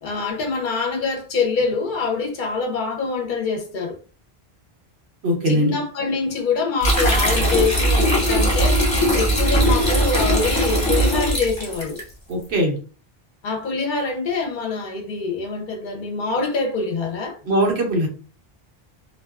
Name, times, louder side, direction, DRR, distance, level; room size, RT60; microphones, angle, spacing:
voice 1, 0.0-4.0 5.5-12.0 13.4-17.4, left 4 dB, 60° left, 0.7 m, -25 dB
voice 2, 5.2-5.8 12.3-12.8 17.4-18.1, equal, 90° right, 1.1 m, -20 dB
sound 1, 6.8-12.0, right 1 dB, 30° left, 0.9 m, -19 dB
2.4 x 2.2 x 2.3 m
omnidirectional pair, 1.0 m